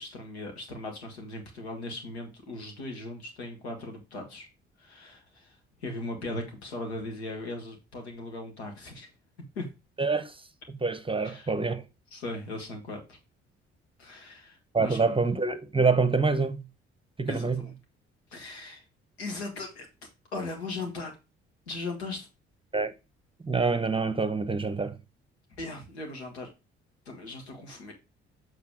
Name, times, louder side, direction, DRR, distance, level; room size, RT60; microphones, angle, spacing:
voice 1, 0.0-4.5 4.8-9.1 9.6-9.7 11.2-11.5 12.1-13.2 14.0-15.2 17.3-17.7 18.3-18.8 19.2-19.9 20.3-21.1 21.7-22.3 25.6-26.5 27.1-27.9, left 2 dB, 80° left, 1.7 m, -38 dB
voice 2, 10.0-10.3 10.8-11.8 14.7-16.6 17.2-17.6 22.7-22.9 23.4-25.0, right 4 dB, 15° right, 0.9 m, -26 dB
7.1 x 4.2 x 4.9 m
figure-of-eight pair, 45°, 32 cm